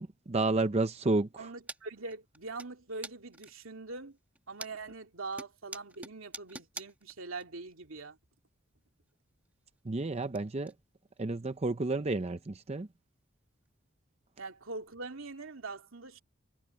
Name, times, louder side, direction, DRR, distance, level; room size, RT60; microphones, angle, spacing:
voice 1, 0.0-1.5 9.9-10.7 11.2-12.9, right 2 dB, 30° right, 0.6 m, -31 dB
voice 2, 1.4-4.2 4.5-8.2 14.4-16.2, right 3 dB, 80° right, 2.5 m, -43 dB
sound 1, 1.7-1.8 2.1-2.7 3.0-3.7 4.2-5.0 5.3-7.4 7.7-7.8 9.1-9.2 9.4-10.4 10.6-10.7 11.2-11.3 11.7-11.8 12.4-12.5 13.6-13.7, right 2 dB, 10° right, 1.4 m, -45 dB
head